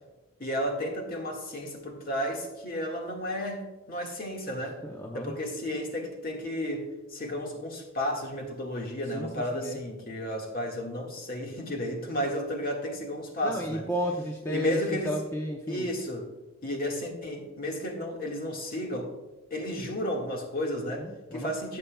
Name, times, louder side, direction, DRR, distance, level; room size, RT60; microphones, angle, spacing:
voice 1, 0.4-4.8 5.1-13.9 14.5-15.2 15.7-16.3 16.6-19.1 19.5-21.8, equal, 45° left, 1.8 m, -33 dB
voice 2, 4.8-5.3 9.1-9.8 13.4-14.8 15.0-15.9 21.0-21.5, equal, 15° left, 0.7 m, -33 dB
15.5 x 6.9 x 2.3 m
head